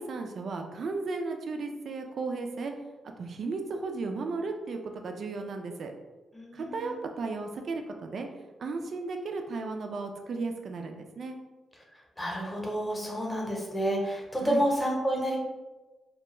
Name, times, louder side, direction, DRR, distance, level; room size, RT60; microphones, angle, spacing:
voice 1, 0.0-2.7 3.0-5.9 6.5-8.3 8.6-11.4 14.4-14.6, right 3 dB, 65° right, 4 dB, 0.3 m, -35 dB
voice 2, 6.3-7.0 11.9-15.4, equal, 15° left, -1 dB, 0.7 m, -30 dB
2.3 x 2.2 x 2.9 m, 1.2 s
cardioid pair, 70°, 0 cm